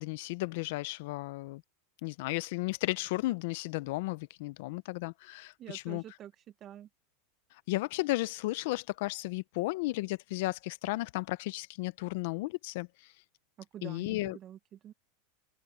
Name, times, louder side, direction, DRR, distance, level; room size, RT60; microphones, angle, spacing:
voice 1, 0.0-1.6 2.0-6.0 7.7-13.1 13.8-14.4, left 20 dB, 65° left, 0.7 m, -34 dB
voice 2, 5.6-6.9 13.6-14.9, right 11 dB, 35° right, 1.2 m, -47 dB
open air
supercardioid pair, 125°, 0 cm